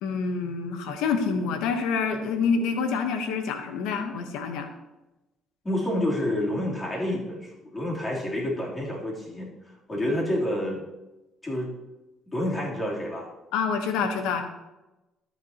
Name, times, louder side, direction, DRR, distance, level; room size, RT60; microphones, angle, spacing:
voice 1, 0.0-4.7 13.5-14.4, left 5 dB, 85° left, 6 dB, 1.1 m, -27 dB
voice 2, 5.6-9.5 9.9-10.8 11.4-11.7 12.3-13.3, left 1 dB, 25° left, -4 dB, 3.5 m, -28 dB
13.0 x 6.9 x 3.0 m, 1.0 s
supercardioid pair, 75°, 0 cm